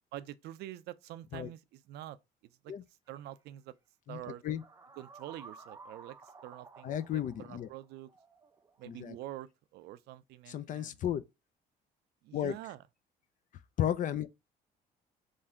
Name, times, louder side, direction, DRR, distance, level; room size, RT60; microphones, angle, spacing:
voice 1, 0.1-2.2 2.6-2.7 3.1-3.7 4.1-4.4 5.0-8.1 8.8-11.0 12.2-12.8, right 14 dB, 75° right, 0.4 m, -46 dB
sound 1, 3.1-3.2 4.4-9.0, right 4 dB, 20° right, 0.5 m, -54 dB
voice 2, 4.1-4.6 6.8-7.7 8.9-9.1 10.5-11.2 12.3-12.6 13.8-14.3, left 10 dB, 50° left, 0.5 m, -34 dB
3.6 x 2.6 x 4.3 m
cardioid pair, 110°, 17 cm